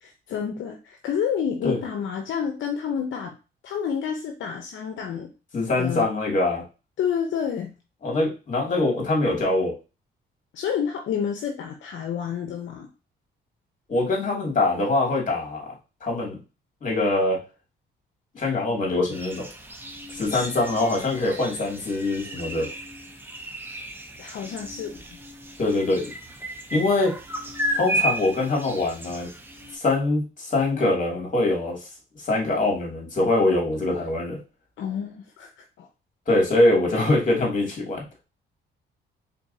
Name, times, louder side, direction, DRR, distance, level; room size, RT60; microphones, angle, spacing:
voice 1, 0.0-3.4 3.6-5.3 5.8-6.1 7.0-7.7 10.5-12.9 20.3-20.5 24.2-25.2 34.8-35.9, left 7 dB, 70° left, 3 dB, 0.8 m, -29 dB
voice 2, 5.5-6.6 8.0-9.7 13.9-15.7 16.0-16.4 16.8-17.4 18.3-19.5 20.1-22.7 25.6-26.1 26.7-27.1 27.7-29.3 29.7-31.9 32.2-34.4 36.3-38.0, left 2 dB, 40° left, -1 dB, 2.6 m, -23 dB
sound 1, 19.1-29.8, right 1 dB, 10° right, 1.1 m, -34 dB
4.4 x 4.1 x 2.8 m, 0.30 s
cardioid pair, 90°, 20 cm